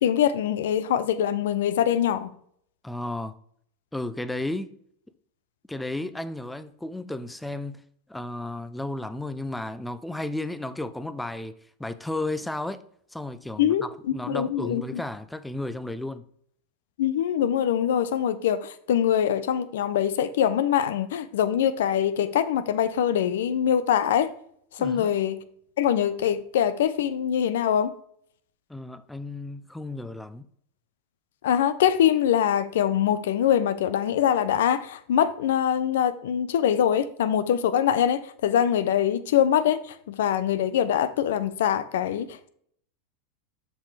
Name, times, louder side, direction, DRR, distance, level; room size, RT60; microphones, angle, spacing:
voice 1, 0.0-2.3 13.6-15.0 17.0-24.3 24.7-25.4 25.8-27.9 31.4-42.5, left 9 dB, 80° left, 0.6 m, -23 dB
voice 2, 2.8-3.4 3.9-4.8 5.7-12.8 13.1-16.2 24.8-25.1 28.7-30.5, left 2 dB, 5° left, 0.5 m, -33 dB
7.3 x 5.4 x 3.3 m
hypercardioid pair, 105°, 0 cm